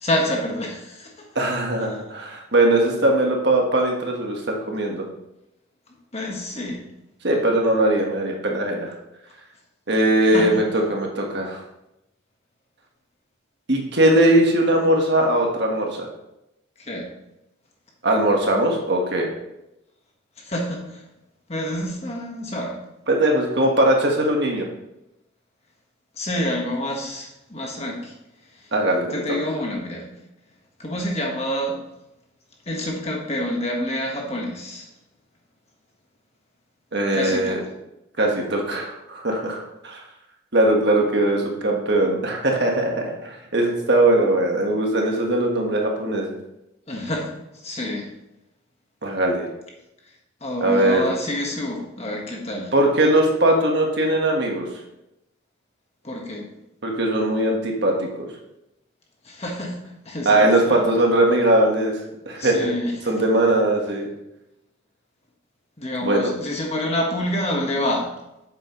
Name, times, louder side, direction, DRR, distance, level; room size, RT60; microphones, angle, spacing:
voice 1, 0.0-1.3 6.1-6.8 10.3-10.6 16.8-17.1 20.4-21.0 21.5-22.8 26.2-28.1 29.1-30.1 30.8-31.8 32.7-34.8 37.1-37.7 46.9-47.3 47.6-48.1 50.4-52.7 56.0-56.5 59.2-59.8 60.0-60.9 62.4-62.9 65.8-68.1, left 1 dB, 30° left, 0 dB, 1.5 m, -27 dB
voice 2, 1.3-5.0 7.2-8.9 9.9-11.6 13.7-16.1 18.0-19.3 23.1-24.7 28.7-29.4 36.9-37.6 38.2-40.0 40.5-46.4 49.0-49.5 50.6-51.1 52.7-54.7 56.8-58.3 60.2-62.0 62.2-62.7 63.0-64.1 66.0-66.3, right 1 dB, 55° right, 1 dB, 1.5 m, -20 dB
8.7 x 7.1 x 3.1 m, 0.88 s
head